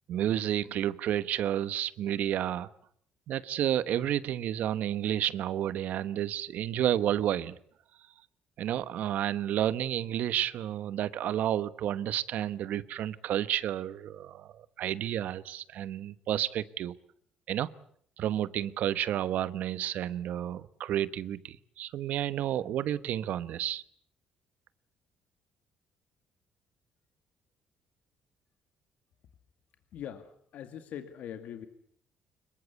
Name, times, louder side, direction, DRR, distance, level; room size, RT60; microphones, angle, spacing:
voice 1, 0.1-2.7 3.3-7.6 8.6-16.9 17.5-17.7 18.2-23.8, right 11 dB, 65° right, 1.1 m, -31 dB
voice 2, 29.9-31.7, left 9 dB, 65° left, 2.2 m, -42 dB
26.0 x 22.5 x 8.2 m
cardioid pair, 150°, 3 cm